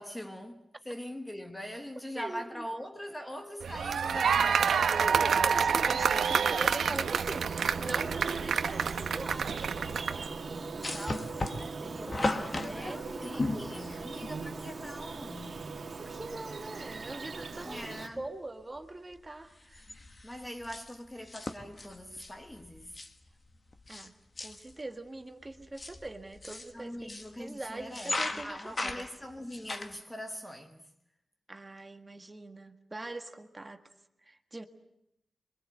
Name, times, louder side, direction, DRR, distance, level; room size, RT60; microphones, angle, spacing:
voice 1, 0.0-5.0 11.8-15.7 17.6-18.2 20.2-23.0 26.7-30.9, equal, 10° left, 1.2 m, -42 dB
voice 2, 2.1-2.6 4.9-13.5 15.8-19.8 23.9-24.1 24.4-27.0 27.4-29.0 31.5-33.8 34.2-34.7, right 2 dB, 20° right, 1.5 m, -43 dB
sound 1, 3.6-10.3, right 6 dB, 75° right, 0.9 m, -28 dB
Bird vocalization bird call bird song, 6.0-18.1, right 4 dB, 45° right, 2.1 m, -40 dB
sound 2, 10.8-14.4 15.6-15.7 15.9-16.0 16.7-17.1 17.4-18.3 18.6-18.8 19.1-24.1 24.4-24.8 25.4-27.3 27.8-30.0, left 2 dB, 25° left, 1.4 m, -37 dB
27.0 x 23.5 x 7.9 m
wide cardioid pair, 170°, 0 cm